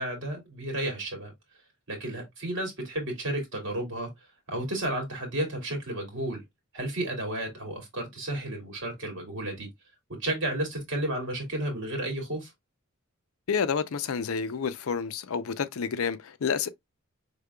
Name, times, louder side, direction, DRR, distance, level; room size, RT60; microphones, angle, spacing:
voice 1, 0.0-1.3 1.9-4.1 4.5-6.4 6.7-9.7 10.2-12.5, right 1 dB, 60° right, 2.3 m, -32 dB
voice 2, 13.5-16.7, left 6 dB, 80° left, 0.5 m, -29 dB
5.1 x 3.7 x 2.2 m
head